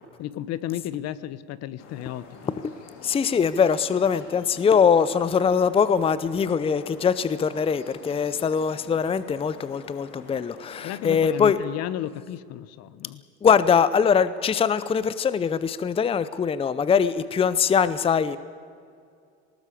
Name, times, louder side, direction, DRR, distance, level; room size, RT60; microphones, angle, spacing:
voice 1, 0.2-2.6 10.8-13.2, left 12 dB, 55° left, 17 dB, 1.0 m, -33 dB
sound 1, 1.8-11.5, left 4 dB, 75° left, 4.3 m, -47 dB
voice 2, 3.0-11.6 13.4-18.4, left 6 dB, 20° left, 15 dB, 0.6 m, -22 dB
20.0 x 18.5 x 8.4 m, 2.3 s
cardioid pair, 125°, 30 cm